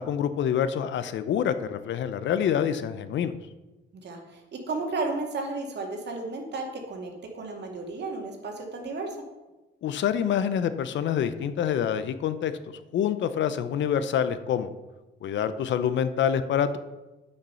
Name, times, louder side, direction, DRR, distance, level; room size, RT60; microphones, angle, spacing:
voice 1, 0.0-3.3 9.8-12.5 12.9-14.7 15.2-16.8, left 8 dB, 70° left, 12 dB, 0.7 m, -26 dB
voice 2, 4.0-9.2, right 3 dB, 60° right, 1 dB, 2.3 m, -33 dB
8.9 x 6.6 x 5.7 m, 1.1 s
cardioid pair, 90°, 20 cm